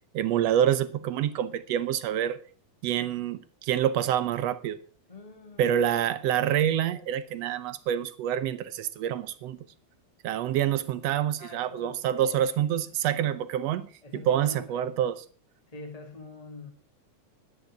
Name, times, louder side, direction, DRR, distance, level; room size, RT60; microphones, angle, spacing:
voice 1, 0.1-2.4 2.8-4.8 5.6-9.6 10.2-13.9 14.1-15.2, right 10 dB, 70° right, 1.7 m, -27 dB
voice 2, 5.1-5.7 11.4-12.6 14.0-14.8 15.7-16.7, left 3 dB, 20° left, 1.2 m, -44 dB
11.0 x 10.5 x 6.1 m
omnidirectional pair, 3.4 m